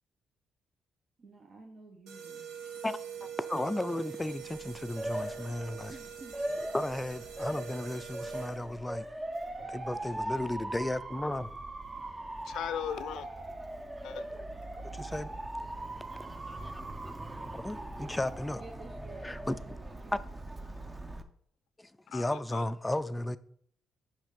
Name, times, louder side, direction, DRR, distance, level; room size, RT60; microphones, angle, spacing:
voice 1, 1.2-2.5 5.9-6.4 18.5-20.2, right 3 dB, 55° right, 1.2 m, -51 dB
sound 1, 2.1-8.8, right 8 dB, 80° right, 1.2 m, -44 dB
voice 2, 2.8-5.9 6.7-9.1 9.6-11.6 14.9-15.4 17.0-17.2 17.5-18.6 19.2-19.6 21.8-23.4, left 1 dB, 10° left, 0.4 m, -34 dB
Motor vehicle (road) / Siren, 4.4-21.2, right 1 dB, 20° right, 0.7 m, -40 dB
voice 3, 12.4-13.3 14.0-14.3 22.1-22.6, left 10 dB, 80° left, 0.5 m, -38 dB
6.2 x 5.4 x 5.1 m
cardioid pair, 90°, 0 cm